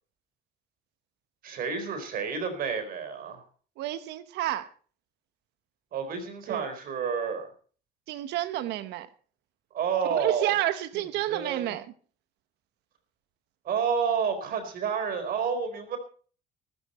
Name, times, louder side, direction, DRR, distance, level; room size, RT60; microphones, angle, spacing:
voice 1, 1.4-3.4 5.9-7.5 9.7-10.6 10.9-11.0 11.3-11.7 13.6-16.0, right 6 dB, 60° right, 4.2 m, -30 dB
voice 2, 3.8-4.7 6.5-6.7 8.1-9.1 10.1-11.9, right 14 dB, 85° right, 1.2 m, -30 dB
14.0 x 13.5 x 4.3 m
cardioid pair, 110°, 17 cm